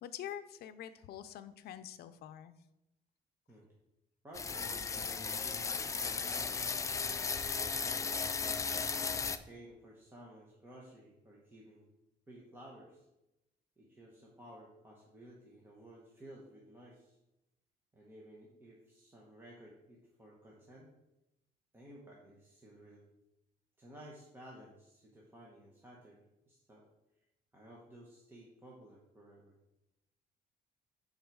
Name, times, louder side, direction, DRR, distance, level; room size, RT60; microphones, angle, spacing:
voice 1, 0.0-2.5, left 10 dB, 80° left, 12 dB, 0.6 m, -46 dB
voice 2, 4.2-6.7 7.0-8.4 9.2-11.8 12.3-13.1 13.8-17.2 17.9-20.9 21.7-23.1 23.8-26.8 27.5-29.5, right 1 dB, 15° right, -4 dB, 1.1 m, -55 dB
sound 1, 4.3-9.4, left 5 dB, 20° left, 0.3 m, -35 dB
10.5 x 4.0 x 4.7 m, 0.93 s
cardioid pair, 160°, 16 cm